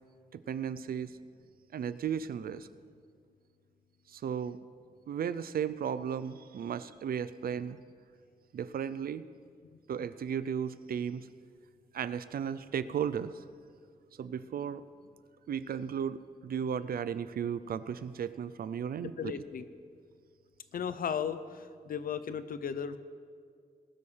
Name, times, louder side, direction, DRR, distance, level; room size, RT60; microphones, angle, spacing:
voice 1, 0.3-1.1 1.7-2.7 4.1-4.6 5.1-7.8 8.5-9.2 9.9-11.3 11.9-13.3 14.2-14.8 15.5-19.4, right 8 dB, 80° right, 15 dB, 0.5 m, -35 dB
voice 2, 19.0-19.7 20.7-23.0, left 7 dB, 70° left, 12 dB, 0.6 m, -36 dB
19.5 x 12.5 x 3.3 m, 2.1 s
wide cardioid pair, 155°, 15 cm